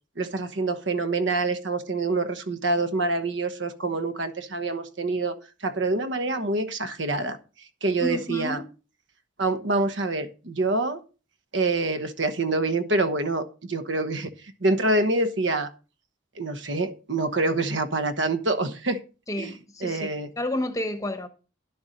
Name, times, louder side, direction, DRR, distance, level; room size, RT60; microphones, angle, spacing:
voice 1, 0.2-7.4 7.8-8.6 9.4-11.0 11.5-15.7 16.3-19.0 19.4-19.5 19.8-20.3, right 2 dB, 65° right, 1.1 m, -26 dB
voice 2, 8.0-8.6 19.3-20.1 20.4-21.3, left 1 dB, 15° left, 1.0 m, -30 dB
11.5 x 7.0 x 5.2 m
head